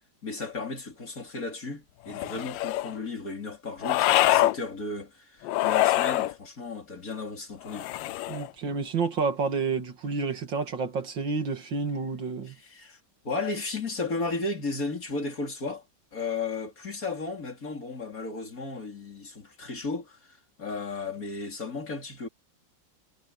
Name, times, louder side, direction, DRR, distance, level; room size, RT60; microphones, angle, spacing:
voice 1, 0.2-8.2 12.5-13.0 13.2-15.8 16.1-22.3, left 3 dB, 50° left, 4.5 m, -34 dB
sound 1, 2.1-2.9 3.8-4.6 5.4-6.3 7.7-8.5, left 15 dB, 85° left, 1.3 m, -24 dB
voice 2, 8.3-12.6, right 4 dB, 80° right, 3.0 m, -29 dB
omnidirectional pair, 2.0 m